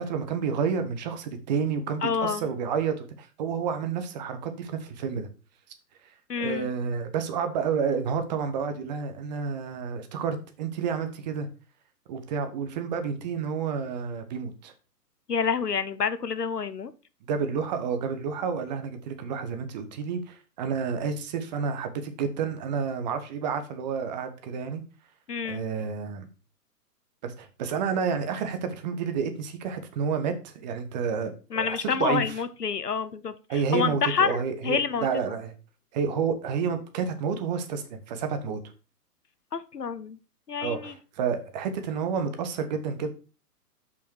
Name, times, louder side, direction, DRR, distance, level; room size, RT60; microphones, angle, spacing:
voice 1, 0.0-5.3 6.4-11.5 12.1-14.7 17.3-24.8 25.4-26.3 27.2-32.2 33.5-35.5 35.9-38.6 40.6-43.1, right 6 dB, 25° right, 8 dB, 1.1 m, -30 dB
voice 2, 2.0-2.5 6.3-6.7 15.3-16.9 25.3-25.6 31.5-35.1 39.5-40.2 40.5-40.9, left 6 dB, 75° left, 13 dB, 0.9 m, -28 dB
6.8 x 5.8 x 4.7 m, 0.34 s
figure-of-eight pair, 120°, 48 cm